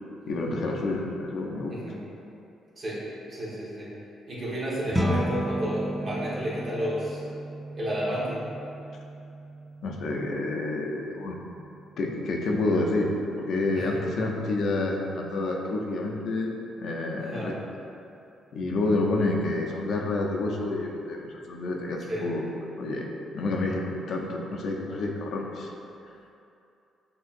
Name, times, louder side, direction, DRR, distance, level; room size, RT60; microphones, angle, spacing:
voice 1, 0.3-1.7 9.8-11.5 12.0-13.1 13.4-16.5 16.8-17.5 18.5-22.4 22.8-23.1 23.3-25.7, left 2 dB, 65° left, 0 dB, 0.5 m, -29 dB
voice 2, 1.7-2.1 2.8-3.9 4.3-7.2 7.8-8.5 13.8-14.0 17.2-17.5 22.1-22.3, equal, 45° right, -6 dB, 1.2 m, -32 dB
sound 1, 4.9-14.4, right 1 dB, 10° right, 0.4 m, -35 dB
6.3 x 2.8 x 2.5 m, 2.7 s
cardioid pair, 90°, 0 cm